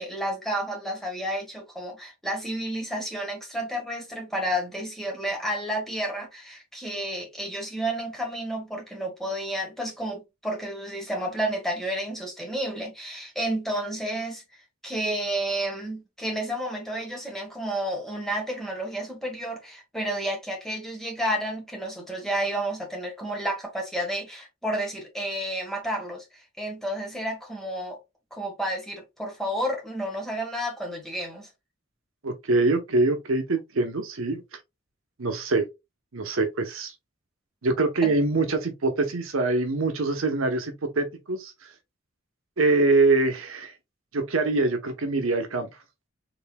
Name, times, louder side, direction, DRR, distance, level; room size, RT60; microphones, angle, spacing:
voice 1, 0.0-14.4 14.8-28.0 28.3-31.5 38.0-38.1, right 1 dB, ahead, 1.3 m, -31 dB
voice 2, 32.2-34.4 35.2-35.6 36.1-36.9 37.6-41.7 42.6-43.7 44.1-45.7, right 3 dB, 80° right, 0.8 m, -24 dB
3.9 x 3.7 x 2.2 m
head